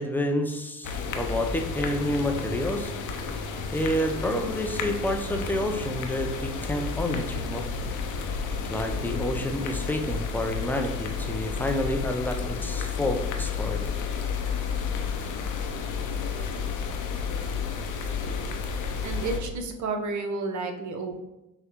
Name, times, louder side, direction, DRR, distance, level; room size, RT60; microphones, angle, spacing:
voice 1, 0.0-2.9 3.7-7.7 8.7-13.8, left 1 dB, 5° left, 3 dB, 0.3 m, -29 dB
sound 1, 0.8-19.4, left 5 dB, 45° left, 0.6 m, -31 dB
voice 2, 19.0-21.2, right 3 dB, 45° right, 4 dB, 0.7 m, -31 dB
5.7 x 2.1 x 2.9 m, 0.98 s
hypercardioid pair, 55°, 43 cm